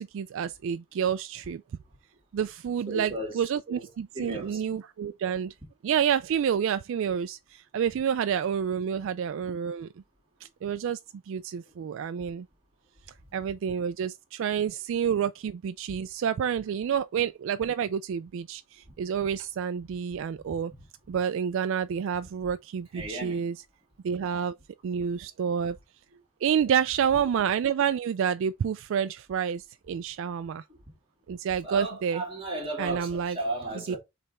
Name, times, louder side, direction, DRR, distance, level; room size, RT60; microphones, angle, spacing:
voice 1, 0.0-1.6 2.3-5.5 5.8-9.9 10.4-11.0 11.3-12.5 13.3-20.7 21.1-23.6 24.0-24.6 24.8-25.8 26.4-30.6 31.3-32.2 32.8-33.4 33.9-34.0, right 8 dB, 60° right, 0.3 m, -29 dB
voice 2, 2.9-3.3 3.7-3.9 4.1-4.6 13.3-13.4 15.9-16.0 22.9-23.5 31.6-34.0, right 2 dB, 25° right, 2.4 m, -35 dB
6.7 x 3.3 x 4.2 m
head